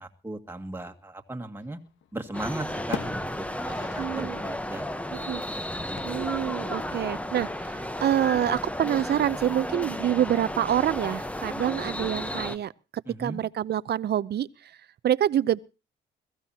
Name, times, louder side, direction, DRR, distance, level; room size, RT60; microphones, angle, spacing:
voice 1, 0.0-1.8 2.1-4.8 5.2-5.3 13.1-13.4, right 2 dB, 10° right, 2.1 m, -37 dB
sound 1, 1.6-2.4 2.7-4.3 4.6-4.7 6.0-6.6, left 10 dB, 75° left, 1.4 m, -40 dB
sound 2, 2.3-12.6, left 1 dB, 5° left, 1.0 m, -33 dB
voice 2, 4.0-4.5 5.1-5.4 6.0-12.7 13.2-14.5 15.0-15.6, right 11 dB, 55° right, 0.7 m, -26 dB
22.0 x 15.0 x 2.9 m
cardioid pair, 90°, 20 cm